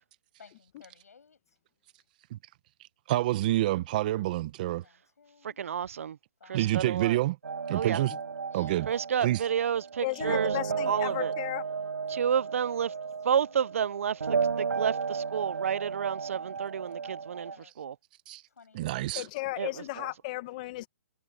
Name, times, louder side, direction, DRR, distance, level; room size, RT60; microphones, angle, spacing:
voice 1, 0.4-1.4 4.8-5.6 6.4-7.0 8.5-8.8 10.7-11.1 13.3-13.6 14.5-14.9 17.0-17.7 18.5-18.9, left 5 dB, 80° left, 7.8 m, -56 dB
voice 2, 3.1-4.8 6.5-7.4 7.7-8.1 8.5-8.9 9.2-9.4 18.3-18.4 18.7-19.2, right 15 dB, 35° right, 1.1 m, -27 dB
voice 3, 5.4-6.2 6.5-7.2 7.7-8.0 8.9-10.5 10.9-11.3 12.1-12.9 13.2-17.5 17.8-18.0 19.6-19.7 20.0-20.1, right 8 dB, 60° right, 0.6 m, -30 dB
sound 1, 7.4-17.6, right 5 dB, 85° right, 4.2 m, -33 dB
voice 4, 10.0-11.6 19.1-20.9, left 19 dB, 30° left, 1.6 m, -35 dB
hypercardioid pair, 160°, 8 cm